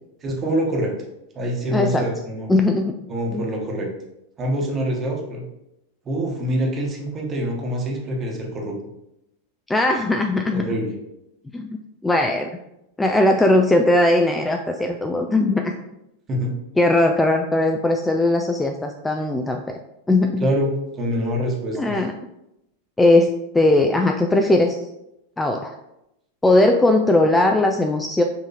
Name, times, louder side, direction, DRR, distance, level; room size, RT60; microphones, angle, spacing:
voice 1, 0.2-0.9 1.3-2.5 3.1-3.9 4.4-5.4 6.0-8.7 10.5-10.9 16.3-16.5 20.4-22.0, equal, 25° right, 0 dB, 1.1 m, -25 dB
voice 2, 1.7-2.1 2.5-2.9 3.3-3.4 9.7-10.6 11.5-11.7 12.0-12.5 13.0-15.7 16.8-19.8 20.1-20.5 21.7-22.1 23.0-24.8 25.4-25.7 26.4-28.2, left 2 dB, 10° left, 4 dB, 0.3 m, -19 dB
5.7 x 2.8 x 2.8 m, 0.85 s
figure-of-eight pair, 90°, 0 cm